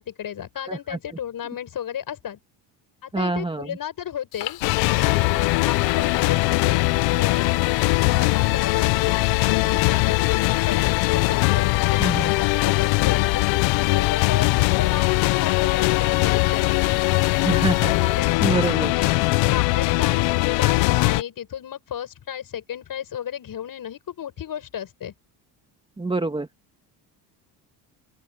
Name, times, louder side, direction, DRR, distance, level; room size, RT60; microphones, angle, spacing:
voice 1, 0.0-2.4 3.0-4.6 4.9-7.6 8.1-13.5 13.9-16.8 17.3-17.6 18.0-18.4 18.9-25.1, left 9 dB, 50° left, 7.2 m, -34 dB
voice 2, 0.7-1.0 3.1-3.8 12.0-12.3 17.4-17.9 18.4-18.9 26.0-26.5, right 2 dB, 10° right, 1.8 m, -25 dB
Fire, 4.3-18.2, left 12 dB, 70° left, 4.7 m, -36 dB
sound 1, 4.6-21.2, left 23 dB, 85° left, 0.7 m, -21 dB
open air
cardioid pair, 115°, 45 cm